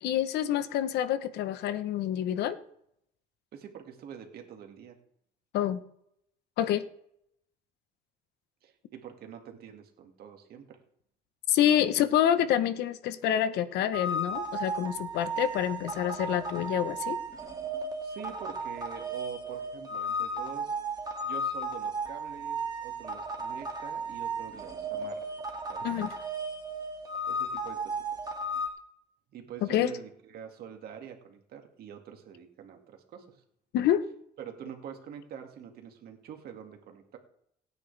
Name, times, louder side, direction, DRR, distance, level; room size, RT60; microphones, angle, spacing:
voice 1, 0.0-2.6 5.5-5.8 6.6-6.9 11.5-17.2 25.8-26.1 29.7-29.9 33.7-34.0, left 11 dB, 80° left, 12 dB, 1.0 m, -27 dB
voice 2, 3.5-5.0 8.6-10.8 18.0-20.8 21.2-25.3 25.7-25.9 27.3-28.3 29.3-33.4 34.4-37.2, right 8 dB, 65° right, 4 dB, 2.2 m, -45 dB
sound 1, 13.9-28.7, right 1 dB, 20° right, 2.3 m, -35 dB
27.0 x 9.5 x 3.4 m, 0.74 s
cardioid pair, 110°, 17 cm